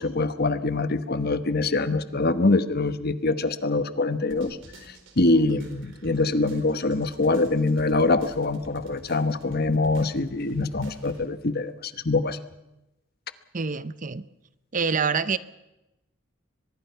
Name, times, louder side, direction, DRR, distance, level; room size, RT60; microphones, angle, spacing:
voice 1, 0.0-4.6 5.2-12.4, left 3 dB, 50° left, 12 dB, 1.2 m, -24 dB
sound 1, 4.3-11.3, right 1 dB, 65° right, 4.4 m, -49 dB
voice 2, 13.5-14.3 14.7-15.4, right 5 dB, 40° right, 15 dB, 0.8 m, -26 dB
23.5 x 21.5 x 5.7 m, 0.93 s
head